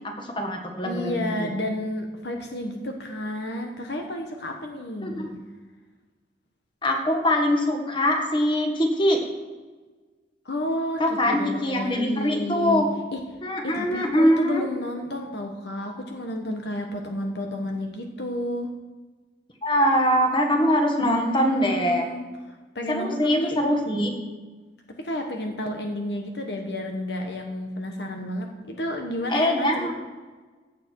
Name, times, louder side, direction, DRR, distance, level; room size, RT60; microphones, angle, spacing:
voice 1, 0.0-1.5 5.0-5.3 6.8-9.2 11.0-12.9 13.4-14.6 19.6-22.1 22.9-24.1 29.3-29.9, equal, 30° left, 2 dB, 1.9 m, -23 dB
voice 2, 0.8-5.4 10.4-12.8 13.1-13.2 13.6-18.7 21.0-22.2 22.7-23.6 25.0-29.9, left 1 dB, 65° left, 3 dB, 1.3 m, -31 dB
16.0 x 8.0 x 4.8 m, 1.3 s
head